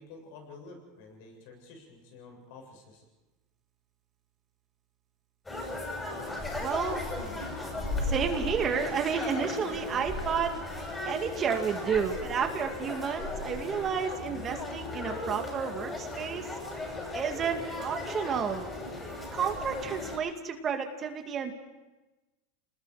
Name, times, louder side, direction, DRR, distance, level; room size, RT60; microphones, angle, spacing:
voice 1, 0.0-3.0, left 3 dB, 65° left, 3 dB, 7.3 m, -50 dB
sound 1, 5.5-20.2, left 2 dB, 15° left, 6.5 m, -36 dB
voice 2, 6.6-7.0 8.0-10.6 11.0-16.5 17.1-18.7 19.3-21.5, right 7 dB, 30° right, 5 dB, 2.2 m, -31 dB
29.0 x 20.0 x 4.9 m, 1.1 s
supercardioid pair, 125°, 0 cm